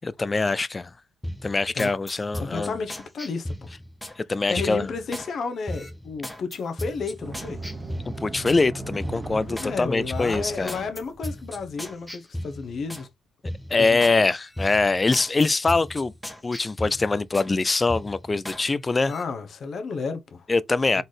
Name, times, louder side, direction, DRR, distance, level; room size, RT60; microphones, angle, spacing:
voice 1, 0.0-0.9 1.4-2.8 4.2-4.9 8.1-10.8 13.7-16.1 16.4-19.1 20.5-21.0, left 3 dB, 25° left, 0.3 m, -23 dB
sound 1, 1.2-4.2 4.6-5.3 5.6-8.6 9.0-9.7 10.1-13.1 13.4-14.2 14.5-17.5 17.9-18.6 19.0-19.2, left 1 dB, 5° left, 0.9 m, -36 dB
voice 2, 2.4-3.7 4.5-7.6 9.5-13.1 13.7-14.2 19.0-20.5 20.9-21.0, left 4 dB, 55° left, 0.9 m, -32 dB
Sliding door, 7.2-12.1, right 2 dB, 30° right, 1.2 m, -38 dB
4.0 x 3.9 x 3.2 m
cardioid pair, 90°, 0 cm